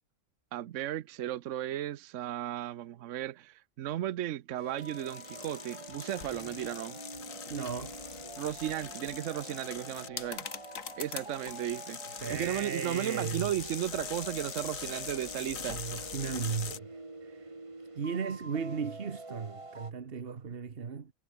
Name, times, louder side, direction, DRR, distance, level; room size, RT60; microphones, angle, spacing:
voice 1, 0.5-7.0 8.4-10.5 11.0-12.0 12.3-15.8, right 12 dB, 70° right, 1.0 m, -35 dB
sound 1, 4.6-19.9, right 2 dB, 25° right, 1.9 m, -46 dB
sound 2, 4.8-16.8, left 7 dB, 90° left, 1.8 m, -42 dB
voice 2, 7.5-8.0 12.2-13.5 15.7-17.5 17.9-21.1, right 6 dB, 50° right, 1.4 m, -36 dB
sound 3, 7.9-8.6 9.4-10.0 11.0-11.8 13.6-14.2 15.0-16.6, left 1 dB, 65° left, 7.7 m, -60 dB
omnidirectional pair, 1.4 m